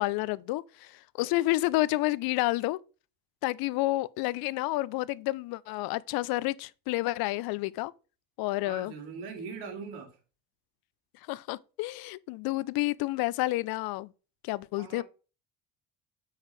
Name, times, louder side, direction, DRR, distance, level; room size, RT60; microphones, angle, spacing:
voice 1, 0.0-2.8 3.4-7.9 8.4-8.9 11.3-14.1 14.4-15.0, left 18 dB, 70° left, 0.6 m, -30 dB
voice 2, 8.6-10.1 14.8-15.0, right 5 dB, 75° right, 2.3 m, -41 dB
8.1 x 4.8 x 3.2 m
supercardioid pair, 75°, 38 cm